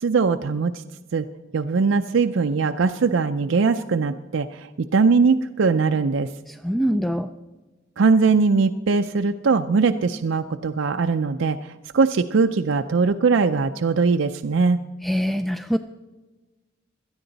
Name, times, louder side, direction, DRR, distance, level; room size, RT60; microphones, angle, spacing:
voice 1, 0.0-0.7 1.1-1.3 1.5-4.7 4.9-6.3 8.0-11.6 11.9-14.8, right 4 dB, 70° right, 7 dB, 0.5 m, -20 dB
voice 2, 6.5-7.3 15.0-15.8, equal, ahead, 9 dB, 0.3 m, -24 dB
17.5 x 12.5 x 4.0 m, 1.2 s
head